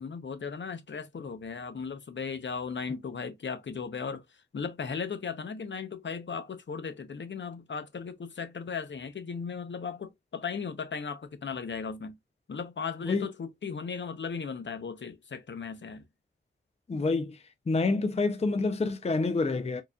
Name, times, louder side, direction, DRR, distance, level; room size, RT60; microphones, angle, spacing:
voice 1, 0.0-12.1 12.5-16.0, left 5 dB, 70° left, 0.7 m, -37 dB
voice 2, 16.9-19.8, left 3 dB, 35° left, 0.5 m, -28 dB
4.6 x 2.6 x 2.3 m
wide cardioid pair, 75°, 20 cm